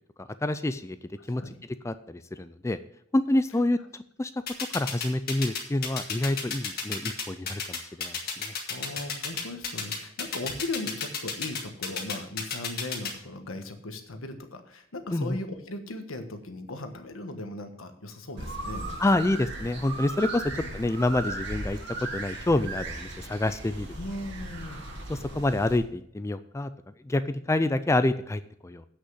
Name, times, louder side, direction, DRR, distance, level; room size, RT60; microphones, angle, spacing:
voice 1, 0.2-1.0 1.3-1.4 1.8-2.8 3.1-4.3 4.7-8.5 15.1-15.4 19.0-21.8 22.1-23.9 25.1-26.7 27.0-28.9, left 2 dB, 15° left, 12 dB, 0.3 m, -27 dB
voice 2, 1.2-1.6 8.7-19.3 20.5-20.7 24.0-24.8, left 2 dB, 80° left, 7 dB, 1.3 m, -38 dB
sound 1, 4.5-13.1, left 6 dB, 45° left, 1.9 m, -31 dB
sound 2, 18.4-25.8, right 2 dB, 55° right, 2.0 m, -37 dB
8.2 x 6.5 x 7.9 m, 0.71 s
head